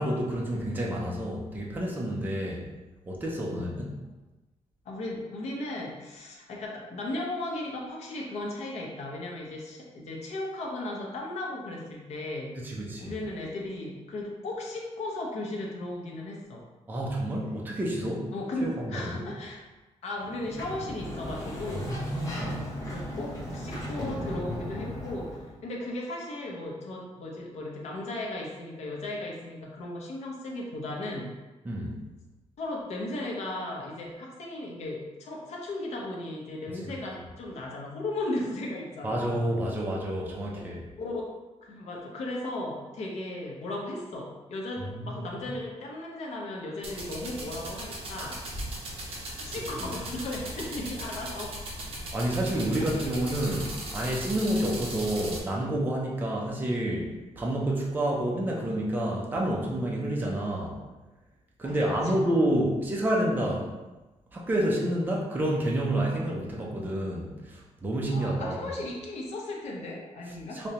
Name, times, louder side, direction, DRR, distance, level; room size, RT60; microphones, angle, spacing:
voice 1, 0.0-2.7 3.1-3.9 12.6-13.2 16.9-18.3 18.6-19.3 21.7-22.7 31.6-32.0 36.8-36.9 39.0-40.8 44.9-45.4 48.2-48.3 49.1-49.4 49.8-49.9 52.1-60.8 61.6-63.7 64.3-68.7 70.5-70.7, right 1 dB, 15° right, -3 dB, 0.5 m, -29 dB
voice 2, 3.5-3.8 4.8-12.5 13.0-16.6 17.8-17.9 18.3-19.6 20.0-22.0 22.8-31.3 32.6-39.4 40.5-48.4 49.4-51.6 51.9-52.0 52.8-52.9 61.6-62.1 66.1-66.2 68.1-70.6, left 1 dB, 65° left, -2 dB, 0.7 m, -36 dB
Sliding door, 20.2-25.5, left 1 dB, 25° left, 0.7 m, -36 dB
sound 1, 46.8-55.4, right 1 dB, 50° right, 0.8 m, -38 dB
5.0 x 2.2 x 2.8 m, 1.1 s
wide cardioid pair, 180°, 12 cm